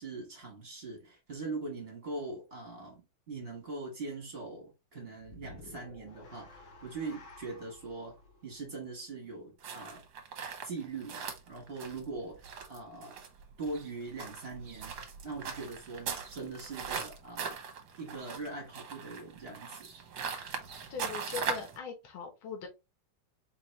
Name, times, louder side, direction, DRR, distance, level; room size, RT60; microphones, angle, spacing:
voice 1, 0.0-3.0 3.3-8.2 8.4-10.0 10.6-13.2 13.6-15.0 15.2-17.6 18.0-19.9, right 3 dB, 30° right, 1.4 m, -41 dB
sound 1, 5.2-9.5, left 2 dB, 55° left, 0.9 m, -54 dB
sound 2, 9.6-21.8, right 6 dB, 60° right, 1.3 m, -40 dB
voice 2, 20.9-22.7, left 6 dB, 75° left, 1.9 m, -40 dB
4.3 x 2.9 x 3.1 m
omnidirectional pair, 2.3 m